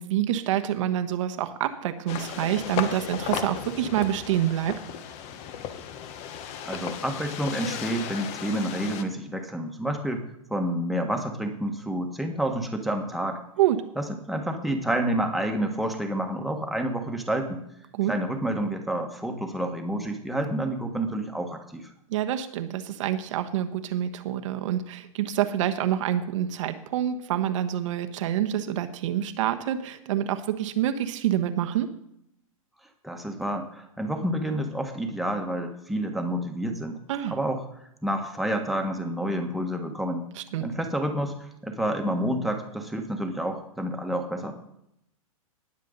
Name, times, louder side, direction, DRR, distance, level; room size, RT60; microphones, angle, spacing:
voice 1, 0.0-4.8 13.6-13.8 17.9-18.1 22.1-31.9 37.1-37.4 40.3-40.7, right 11 dB, 60° right, 8 dB, 1.2 m, -27 dB
sound 1, 2.1-9.0, left 9 dB, 35° left, 1.2 m, -35 dB
voice 2, 6.6-10.2 10.5-13.4 14.0-17.6 18.1-21.8 33.0-37.0 37.3-37.6 38.0-40.3 40.6-44.6, right 1 dB, ahead, 3 dB, 1.5 m, -29 dB
19.5 x 7.5 x 4.0 m, 0.78 s
hypercardioid pair, 130°, 18 cm